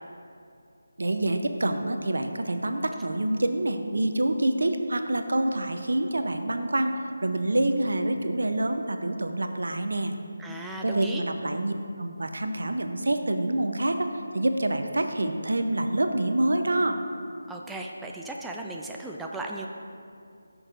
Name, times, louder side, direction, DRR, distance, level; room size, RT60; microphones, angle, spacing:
voice 1, 1.0-6.9 7.2-10.1 10.8-17.0, right 1 dB, 75° right, 7 dB, 0.7 m, -27 dB
voice 2, 10.4-11.2 17.5-19.7, right 2 dB, 5° right, -1 dB, 0.3 m, -36 dB
14.0 x 6.3 x 2.6 m, 2.4 s
figure-of-eight pair, 165°, 0 cm